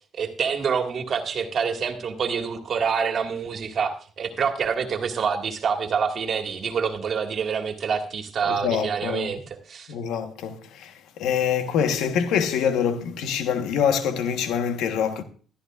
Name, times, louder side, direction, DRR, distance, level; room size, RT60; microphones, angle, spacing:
voice 1, 0.2-9.9, right 6 dB, 55° right, 2.0 m, -26 dB
voice 2, 8.4-9.3 9.9-10.9 11.2-15.2, left 7 dB, 85° left, 1.3 m, -25 dB
14.0 x 13.0 x 2.5 m
supercardioid pair, 70°, 0 cm